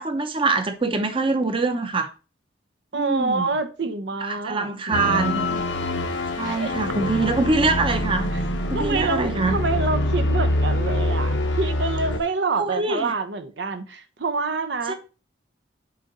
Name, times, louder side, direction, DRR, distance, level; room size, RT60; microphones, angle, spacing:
voice 1, 0.0-2.1 2.9-3.5 4.2-5.5 6.3-8.3 8.7-9.6 12.6-13.1 14.9-15.0, right 3 dB, 30° right, 0.8 m, -24 dB
voice 2, 2.9-5.6 6.4-6.8 8.3-8.4 8.7-14.9, right 3 dB, 70° right, 0.8 m, -27 dB
sound 1, 4.9-12.2, left 1 dB, 80° left, 1.0 m, -25 dB
6.7 x 3.8 x 5.4 m
head